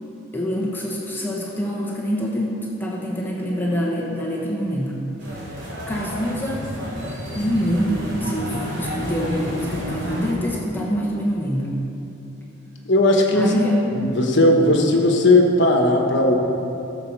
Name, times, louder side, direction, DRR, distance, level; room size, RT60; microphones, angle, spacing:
voice 1, 0.3-5.0 5.3-5.6 5.9-6.7 7.3-11.7 13.3-14.0, equal, 10° left, -4 dB, 1.1 m, -25 dB
sound 1, 5.2-10.3, equal, 55° right, 2.5 m, -30 dB
voice 2, 12.8-13.6 13.9-16.4, left 1 dB, 60° left, 1 dB, 1.2 m, -17 dB
14.0 x 7.1 x 4.7 m, 2.9 s
head